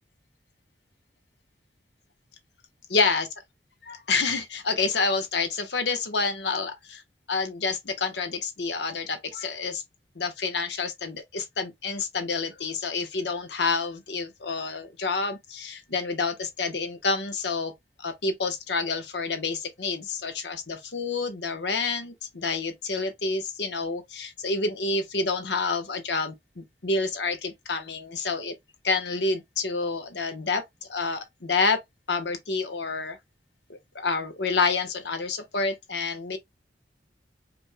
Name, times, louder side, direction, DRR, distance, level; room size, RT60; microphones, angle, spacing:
voice 1, 2.9-3.3 3.8-7.0 7.3-9.8 10.1-17.7 18.0-28.5 28.8-30.6 30.9-31.8 32.1-33.2 33.9-36.4, left 4 dB, 75° left, 1.0 m, -28 dB
5.1 x 3.1 x 2.2 m
head